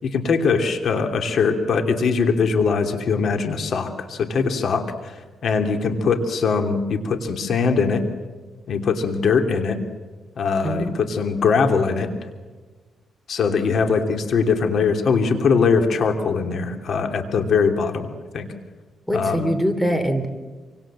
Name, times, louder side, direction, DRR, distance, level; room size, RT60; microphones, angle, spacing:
voice 1, 0.0-5.1 5.4-8.0 8.7-9.8 10.4-12.1 13.3-18.5 19.1-19.5, left 5 dB, 65° left, 6 dB, 3.0 m, -21 dB
voice 2, 10.6-10.9 19.1-20.3, equal, 5° left, 8 dB, 3.1 m, -23 dB
27.5 x 25.0 x 7.6 m, 1.3 s
cardioid pair, 110°, 0 cm